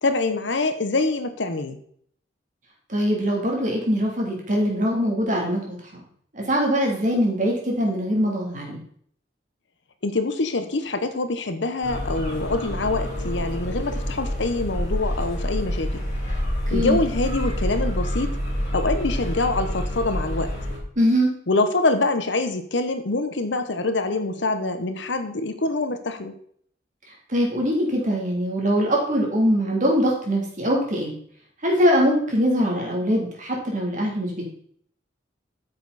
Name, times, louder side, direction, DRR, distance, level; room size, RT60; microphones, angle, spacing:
voice 1, 0.0-1.8 10.0-16.0 16.7-18.4 18.7-20.5 21.5-26.3, left 2 dB, 75° left, 9 dB, 1.0 m, -25 dB
voice 2, 2.9-6.0 6.3-8.8 16.7-17.0 21.0-21.3 27.3-31.1 31.6-34.4, equal, 45° right, -1 dB, 3.0 m, -22 dB
sound 1, 11.8-20.8, equal, 45° left, 4.1 m, -27 dB
9.0 x 6.8 x 4.1 m, 0.62 s
head